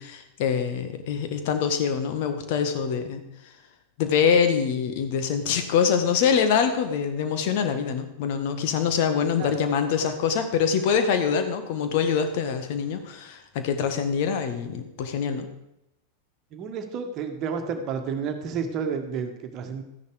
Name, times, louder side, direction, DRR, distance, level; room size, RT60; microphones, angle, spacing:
voice 1, 0.0-3.2 4.0-15.5, left 7 dB, 50° left, 8 dB, 1.5 m, -24 dB
voice 2, 16.5-19.8, right 6 dB, 35° right, 6 dB, 1.6 m, -31 dB
13.5 x 10.0 x 4.9 m, 0.86 s
figure-of-eight pair, 90°, 0 cm